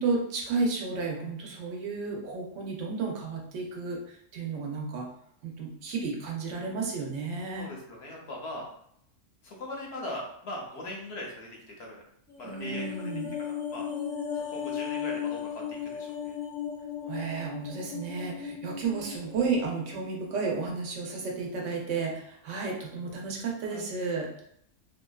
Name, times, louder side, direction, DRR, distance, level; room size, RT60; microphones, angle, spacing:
voice 1, 0.0-5.1 5.4-7.7 12.4-13.3 17.0-24.3, right 4 dB, 75° right, -1 dB, 0.9 m, -32 dB
voice 2, 7.5-8.7 9.4-12.0 12.4-13.1 13.4-13.9 14.3-16.4 23.7-23.9, left 1 dB, 65° left, -1 dB, 0.8 m, -40 dB
sound 1, 12.3-20.7 21.0-21.2, left 7 dB, 10° right, 0.6 m, -36 dB
2.7 x 2.2 x 2.2 m, 0.70 s
omnidirectional pair, 1.3 m